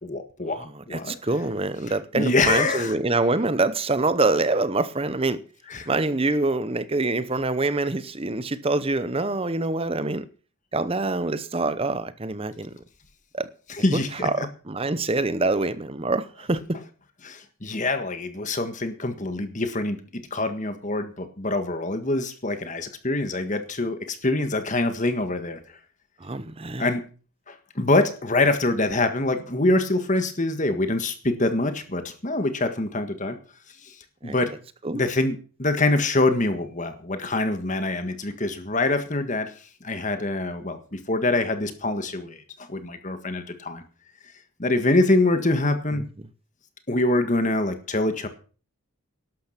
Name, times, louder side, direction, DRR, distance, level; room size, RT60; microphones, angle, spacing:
voice 1, 0.0-0.6 0.9-1.1 2.1-2.9 5.7-5.9 13.7-14.5 17.2-20.0 20.3-25.6 26.8-27.0 27.5-33.4 33.8-33.9 34.2-34.5 34.9-39.5 39.8-43.8 44.6-46.1 46.9-48.3, left 2 dB, 35° left, 1.6 m, -25 dB
voice 2, 0.7-5.4 5.9-10.2 10.7-12.7 13.3-13.5 13.9-16.8 26.2-26.9 34.2-34.4 34.8-35.0, right 2 dB, 25° right, 0.7 m, -25 dB
12.5 x 12.0 x 5.9 m
head